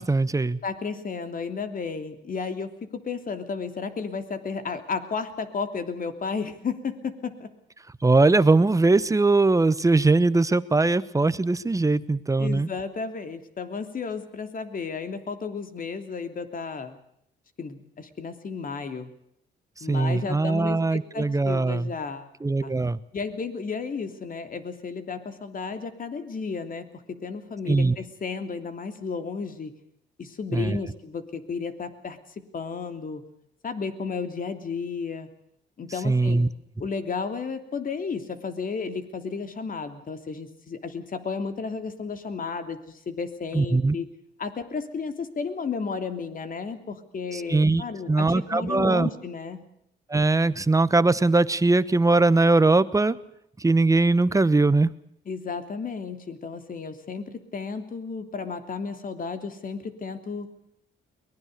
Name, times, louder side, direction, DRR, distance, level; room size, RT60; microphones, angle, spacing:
voice 1, 0.0-0.6 8.0-12.7 19.8-21.9 22.4-23.0 27.7-27.9 30.5-30.8 36.0-36.5 43.5-44.0 47.3-49.1 50.1-53.2 53.6-54.9, right 3 dB, 15° right, 16 dB, 1.1 m, -21 dB
voice 2, 0.6-7.5 12.4-17.0 17.6-19.1 19.8-22.3 22.6-22.8 23.1-29.7 30.2-33.2 33.6-35.3 35.8-36.5 36.8-44.1 44.4-49.7 55.3-60.5, left 5 dB, 45° left, 8 dB, 3.1 m, -33 dB
23.0 x 20.5 x 6.8 m, 0.72 s
cardioid pair, 90°, 20 cm